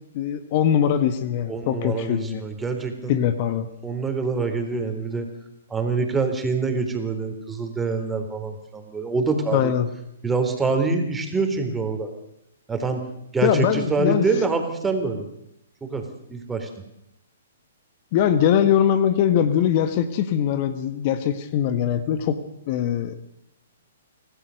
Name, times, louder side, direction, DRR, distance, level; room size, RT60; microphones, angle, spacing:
voice 1, 0.1-2.4 3.1-3.7 9.5-9.9 13.4-14.2 18.1-22.4 22.7-23.2, left 9 dB, 40° left, 11 dB, 1.7 m, -21 dB
voice 2, 1.5-3.2 3.8-5.3 5.7-9.7 10.2-12.1 12.7-13.0 13.3-15.3 15.8-16.7, right 4 dB, 10° right, 6 dB, 3.9 m, -25 dB
26.5 x 17.0 x 6.6 m, 0.80 s
hypercardioid pair, 125°, 0 cm